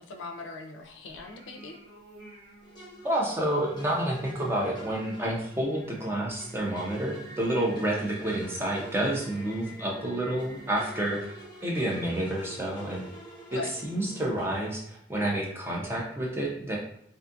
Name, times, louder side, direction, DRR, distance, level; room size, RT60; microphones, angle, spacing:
voice 1, 0.0-1.8 11.2-11.3 13.5-13.7, left 3 dB, 80° left, 3 dB, 0.4 m, -40 dB
Singing, 1.0-11.0, right 1 dB, 50° right, 1.1 m, -50 dB
sound 1, 2.6-14.6, right 1 dB, 20° left, 0.9 m, -48 dB
voice 2, 3.0-13.0 13.5-16.8, right 1 dB, 10° right, -2 dB, 0.4 m, -29 dB
2.5 x 2.3 x 2.5 m, 0.70 s
head